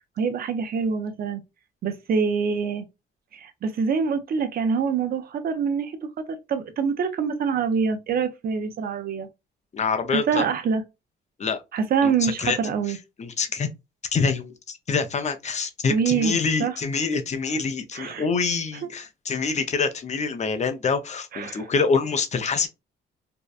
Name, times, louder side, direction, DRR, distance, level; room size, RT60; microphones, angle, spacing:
voice 1, 0.2-1.4 1.8-2.9 3.3-6.0 6.3-9.3 10.1-10.8 11.7-13.0 15.9-16.7 17.9-18.3 21.3-21.7, right 6 dB, 50° right, 0.5 m, -25 dB
voice 2, 9.7-10.4 11.4-11.6 12.0-12.6 12.9-13.7 14.1-22.7, left 5 dB, 35° left, 0.5 m, -26 dB
2.6 x 2.1 x 2.3 m
cardioid pair, 90°, 20 cm